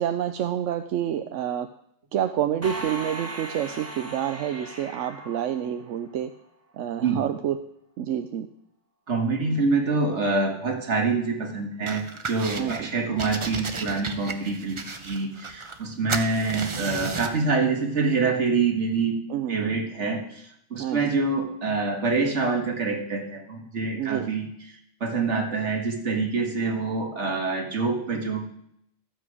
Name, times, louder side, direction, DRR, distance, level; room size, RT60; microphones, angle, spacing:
voice 1, 0.0-1.7 2.1-6.3 6.7-7.6 8.0-8.5 12.6-12.9 19.3-19.8 20.8-21.1 23.9-24.3, right 10 dB, 90° right, 8 dB, 1.0 m, -28 dB
sound 1, 2.6-6.3, right 1 dB, 15° right, 1.0 m, -38 dB
voice 2, 9.1-19.1 19.5-24.5 25.0-28.5, right 4 dB, 70° right, 2 dB, 2.2 m, -26 dB
sound 2, 11.9-12.8 13.2-15.8 16.1-17.4, right 4 dB, 30° right, 0.7 m, -34 dB
14.0 x 7.8 x 4.9 m, 0.74 s
omnidirectional pair, 1.2 m